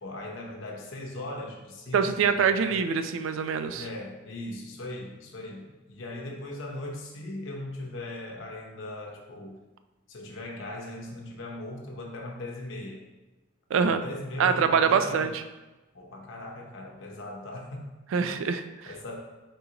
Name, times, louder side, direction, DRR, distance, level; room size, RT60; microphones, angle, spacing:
voice 1, 0.0-2.8 3.7-9.6 10.1-13.0 13.7-15.3 15.9-17.9 18.2-18.4 18.8-19.2, left 1 dB, 70° left, 0 dB, 0.8 m, -39 dB
voice 2, 1.9-3.8 13.7-14.0 14.4-15.3 18.1-18.9, right 6 dB, 75° right, 9 dB, 0.3 m, -24 dB
4.0 x 3.8 x 2.8 m, 1.1 s
head